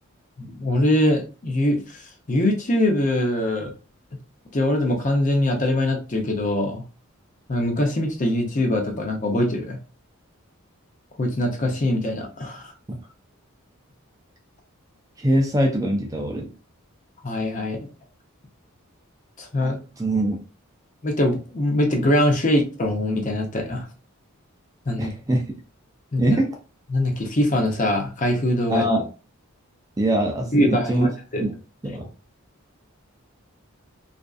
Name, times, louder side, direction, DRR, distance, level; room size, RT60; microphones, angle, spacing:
voice 1, 0.4-2.0 2.3-3.7 4.5-6.8 7.5-9.8 11.2-12.7 17.2-17.9 19.4-19.8 21.0-23.9 24.9-25.1 26.1-26.4 26.9-28.8 30.5-31.5, left 1 dB, 35° left, 2 dB, 0.6 m, -22 dB
voice 2, 15.2-16.5 19.6-20.4 25.0-25.5 26.2-26.5 28.7-29.0 30.0-31.1 31.4-31.5 31.8-32.1, right 1 dB, 15° right, 1 dB, 0.3 m, -23 dB
2.5 x 2.3 x 2.3 m, 0.33 s
head